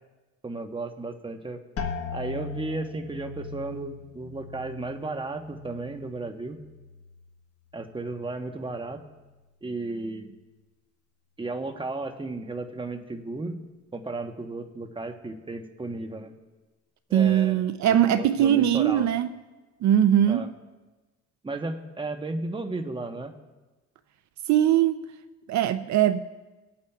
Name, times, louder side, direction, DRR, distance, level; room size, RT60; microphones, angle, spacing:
voice 1, 0.4-1.6 2.1-6.6 7.7-9.0 9.6-10.3 11.4-13.6 13.9-16.3 17.1-17.6 17.9-19.1 20.3-20.5 21.4-23.3, right 2 dB, 15° right, 6 dB, 1.0 m, -34 dB
sound 1, 1.8-7.4 7.7-8.4 9.0-9.4, left 5 dB, 50° left, 1.4 m, -40 dB
voice 2, 17.1-19.3 19.8-20.4 24.5-25.0 25.5-26.2, right 11 dB, 70° right, 11 dB, 0.5 m, -21 dB
23.5 x 8.7 x 2.3 m, 1.2 s
cardioid pair, 90°, 30 cm